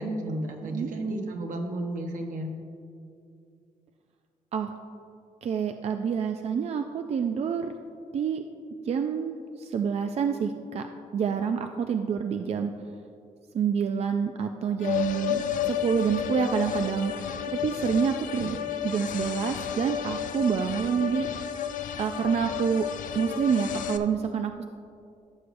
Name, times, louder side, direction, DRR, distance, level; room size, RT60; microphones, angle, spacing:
voice 1, 0.0-2.6 18.4-18.6, right 1 dB, 80° right, 2 dB, 1.1 m, -33 dB
voice 2, 5.4-7.8 8.1-8.4 8.8-10.9 11.1-12.7 13.5-18.6 18.8-21.5 22.0-22.9 23.1-24.6, right 7 dB, 55° right, 6 dB, 0.4 m, -28 dB
sound 1, 14.8-24.0, left 9 dB, 85° left, 0.4 m, -32 dB
14.5 x 6.5 x 2.6 m, 2.5 s
cardioid pair, 105°, 13 cm